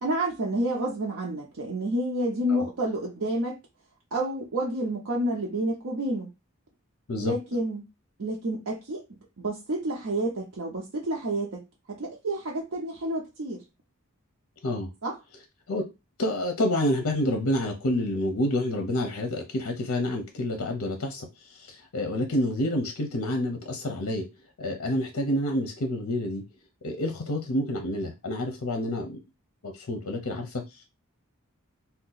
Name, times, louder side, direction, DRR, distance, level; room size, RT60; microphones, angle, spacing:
voice 1, 0.0-3.6 4.1-6.3 7.2-7.9 8.2-11.6 11.9-13.6 15.0-15.2, right 1 dB, 70° right, 0.7 m, -29 dB
voice 2, 16.2-24.3 24.6-26.4 26.8-29.2 29.6-30.6, left 1 dB, 70° left, 0.6 m, -28 dB
2.7 x 2.2 x 3.8 m
head